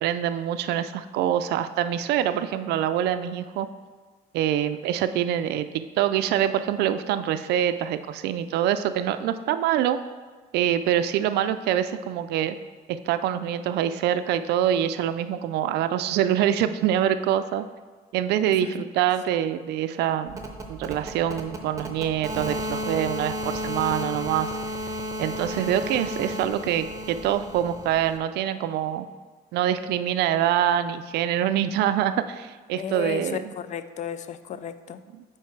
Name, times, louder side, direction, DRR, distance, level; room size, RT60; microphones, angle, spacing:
voice 1, 0.0-3.7 4.3-5.7 6.0-10.0 10.5-12.6 12.9-17.7 18.1-20.4 20.7-24.5 25.2-29.1 29.5-33.5 35.1-35.2, right 10 dB, 80° right, 11 dB, 0.4 m, -25 dB
sound 1, 20.3-28.2, equal, 20° right, 0.8 m, -33 dB
voice 2, 32.8-35.0, left 8 dB, 45° left, 12 dB, 0.4 m, -34 dB
4.6 x 4.4 x 5.8 m, 1.4 s
cardioid pair, 110°, 17 cm